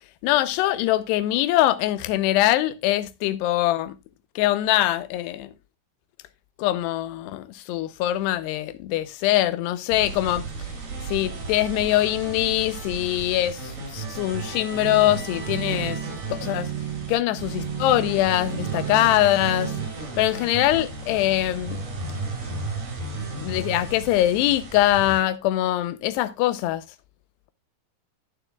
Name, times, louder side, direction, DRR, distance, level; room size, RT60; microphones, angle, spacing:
voice 1, 0.2-4.0 4.4-5.5 6.6-10.4 11.1-16.0 16.3-16.7 17.1-19.7 20.2-21.8 23.3-26.8, left 14 dB, 90° left, 2.9 m, -23 dB
sound 1, 9.9-25.2, right 3 dB, 60° right, 6.2 m, -34 dB
sound 2, 14.8-19.9, right 11 dB, 85° right, 1.4 m, -33 dB
17.5 x 7.0 x 2.3 m
omnidirectional pair, 4.7 m